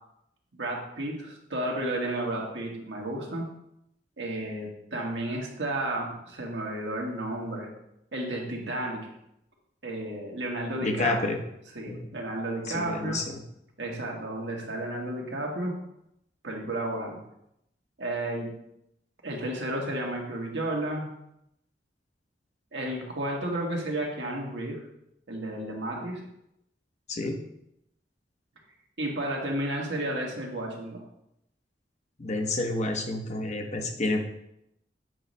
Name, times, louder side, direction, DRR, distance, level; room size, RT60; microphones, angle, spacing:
voice 1, 0.5-3.5 4.2-7.7 8.1-9.1 9.8-11.3 11.7-13.2 13.8-15.7 16.4-17.2 18.0-18.5 19.2-21.0 22.7-24.8 25.3-26.2 29.0-31.0, right 1 dB, 80° right, -1 dB, 1.6 m, -32 dB
voice 2, 10.8-11.4 11.9-12.1 12.7-13.4 27.1-27.4 32.2-34.2, left 2 dB, 40° left, 4 dB, 0.8 m, -29 dB
7.8 x 3.1 x 5.3 m, 0.80 s
head